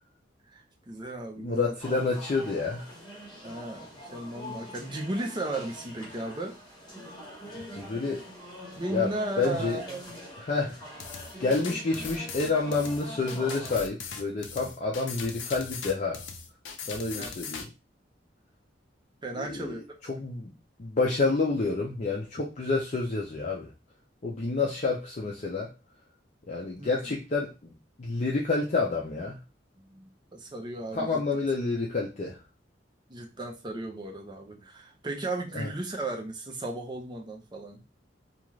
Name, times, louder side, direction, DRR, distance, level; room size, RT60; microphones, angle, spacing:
voice 1, 0.5-1.8 3.4-6.6 8.8-10.0 17.1-17.3 19.2-20.0 26.8-27.2 29.9-31.2 33.1-37.8, right 2 dB, 25° right, 0.6 m, -35 dB
voice 2, 1.4-2.9 7.7-8.2 8.9-9.8 10.4-10.8 11.4-16.2 16.8-17.7 19.4-20.5 20.8-23.7 24.2-25.7 26.5-29.4 30.9-32.4 35.5-35.7, left 3 dB, 40° left, 0.5 m, -29 dB
sound 1, 1.8-13.8, equal, 25° left, 1.2 m, -44 dB
sound 2, 11.0-17.7, left 6 dB, 90° left, 0.5 m, -40 dB
2.4 x 2.4 x 3.1 m
head